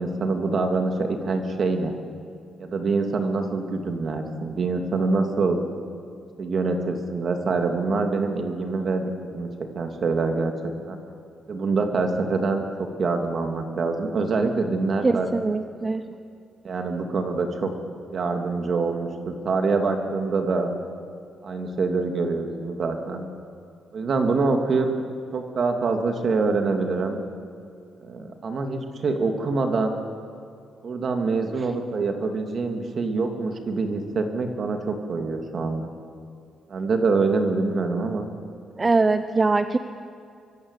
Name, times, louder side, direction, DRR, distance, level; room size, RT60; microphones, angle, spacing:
voice 1, 0.0-1.9 2.6-5.6 6.4-9.5 9.7-10.5 10.8-11.0 11.5-15.3 16.6-17.7 18.1-20.7 21.4-23.3 23.9-24.9 25.3-27.2 28.0-30.0 30.8-35.9 36.7-38.3, right 3 dB, 45° right, 4 dB, 2.8 m, -25 dB
voice 2, 15.0-16.0 38.8-39.8, right 3 dB, 20° right, 10 dB, 0.7 m, -22 dB
25.0 x 23.5 x 8.4 m, 2.4 s
cardioid pair, 150°, 0 cm